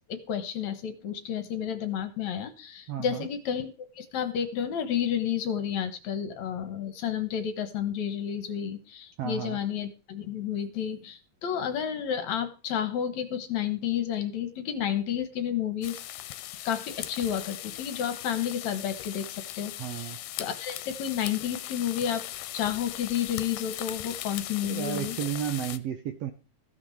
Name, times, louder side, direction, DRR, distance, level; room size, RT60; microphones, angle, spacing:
voice 1, 0.1-16.0 16.7-19.3 19.6-22.2 22.5-25.2, left 9 dB, 65° left, 10 dB, 2.3 m, -31 dB
voice 2, 2.9-3.3 9.2-9.6 19.8-20.2 24.6-26.3, right 10 dB, 70° right, 8 dB, 1.6 m, -33 dB
sound 1, 15.8-25.8, left 14 dB, 85° left, 2.4 m, -39 dB
15.0 x 6.1 x 6.5 m, 0.34 s
omnidirectional pair, 3.8 m